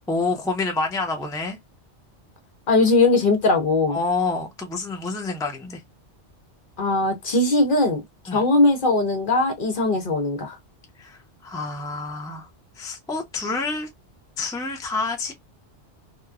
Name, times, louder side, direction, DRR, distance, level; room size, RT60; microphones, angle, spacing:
voice 1, 0.1-1.6 3.9-5.8 8.3-8.4 11.0-12.5 12.8-13.9 14.4-15.3, left 3 dB, 5° left, 0.4 m, -28 dB
voice 2, 2.7-4.0 6.8-8.0 8.3-10.6, left 2 dB, 50° left, 0.9 m, -20 dB
2.9 x 2.1 x 2.3 m
omnidirectional pair, 1.2 m